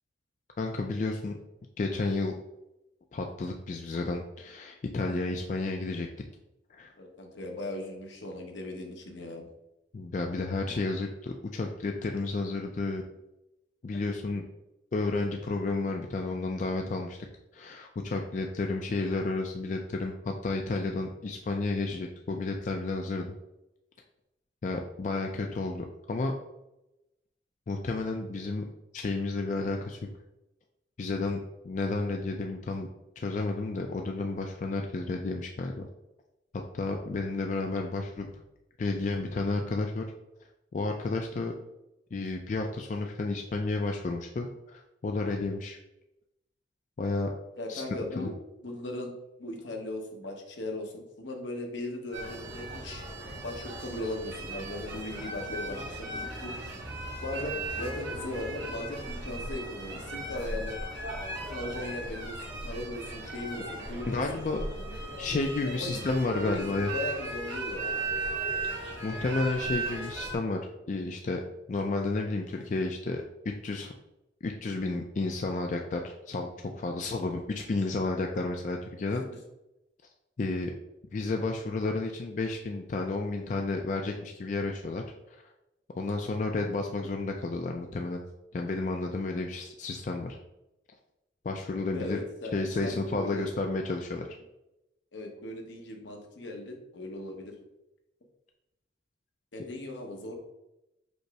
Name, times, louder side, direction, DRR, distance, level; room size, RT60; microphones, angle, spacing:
voice 1, 0.6-1.4 1.8-2.3 3.1-6.1 6.8-6.9 9.9-13.0 13.8-14.4 14.9-17.2 17.5-23.3 24.6-26.3 27.7-28.6 28.9-30.0 31.0-31.4 31.6-32.9 33.2-35.9 36.7-38.3 38.8-40.0 40.7-41.5 42.1-45.8 47.0-47.3 47.7-47.8 48.2-48.3 64.1-64.6 65.2-66.9 69.0-70.6 70.9-71.4 71.7-73.9 74.4-76.5 76.7-79.2 80.4-80.7 81.1-85.0 85.9-88.2 88.5-90.4 91.4-92.2 92.5-94.3, left 3 dB, 40° left, 2 dB, 0.3 m, -31 dB
voice 2, 7.0-9.5 47.6-48.4 48.6-49.1 49.4-53.0 53.4-56.6 57.2-60.8 61.5-64.2 64.8-68.1 91.9-93.5 94.2-94.3 95.1-97.5 99.5-100.4, left 1 dB, 80° left, 2 dB, 0.9 m, -38 dB
sound 1, 52.1-70.4, right 2 dB, 75° right, 1.4 m, -37 dB
5.2 x 2.0 x 4.7 m, 0.90 s
head